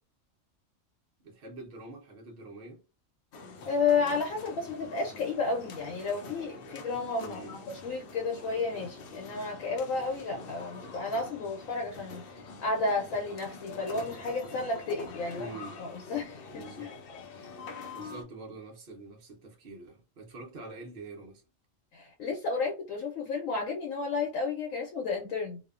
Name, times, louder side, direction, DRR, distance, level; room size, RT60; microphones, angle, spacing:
voice 1, 1.2-2.8 7.2-7.6 15.3-15.8 16.5-16.9 17.9-21.4, right 2 dB, 55° right, 0.9 m, -45 dB
sound 1, 3.3-18.2, left 3 dB, 60° left, 0.6 m, -45 dB
voice 2, 3.7-15.5 15.8-16.9 21.9-25.6, left 4 dB, 90° left, 1.1 m, -32 dB
2.6 x 2.1 x 2.3 m
omnidirectional pair, 1.4 m